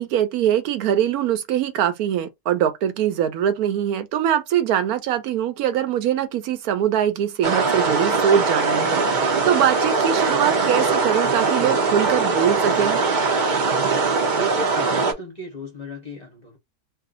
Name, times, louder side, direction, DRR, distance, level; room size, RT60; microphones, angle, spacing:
voice 1, 0.0-13.0, right 10 dB, 75° right, 1.0 m, -22 dB
sound 1, 7.4-15.1, right 4 dB, 60° right, 0.5 m, -21 dB
voice 2, 14.3-16.6, left 1 dB, 40° left, 0.6 m, -35 dB
2.6 x 2.4 x 3.6 m
omnidirectional pair, 1.7 m